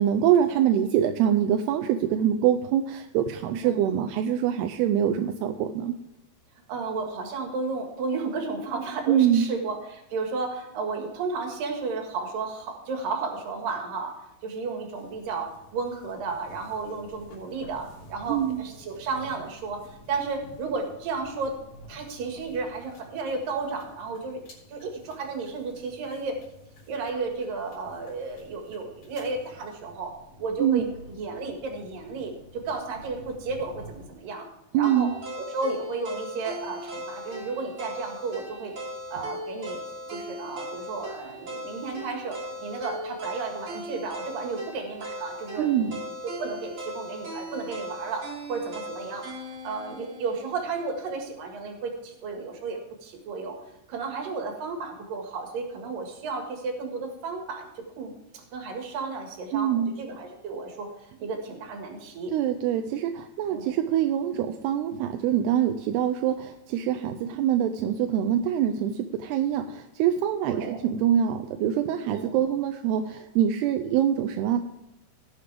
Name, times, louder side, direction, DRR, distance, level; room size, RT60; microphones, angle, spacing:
voice 1, 0.0-6.0 9.1-9.5 18.3-18.6 30.6-30.8 34.7-35.2 45.6-46.0 59.5-59.9 62.3-74.6, right 10 dB, 85° right, 7 dB, 2.4 m, -24 dB
voice 2, 3.6-4.0 6.7-14.1 14.4-21.6 21.9-24.4 24.7-26.4 26.9-34.5 34.8-35.1 35.4-38.7 39.1-39.8 40.1-49.3 49.6-53.6 53.9-62.4 63.5-63.8 70.5-70.8 72.1-72.4, right 4 dB, 60° right, 3 dB, 3.1 m, -33 dB
sound 1, 14.9-34.1, left 1 dB, 50° left, 4.4 m, -50 dB
sound 2, 34.8-50.9, equal, 40° right, 2.6 m, -38 dB
18.5 x 6.7 x 3.4 m, 0.90 s
omnidirectional pair, 5.0 m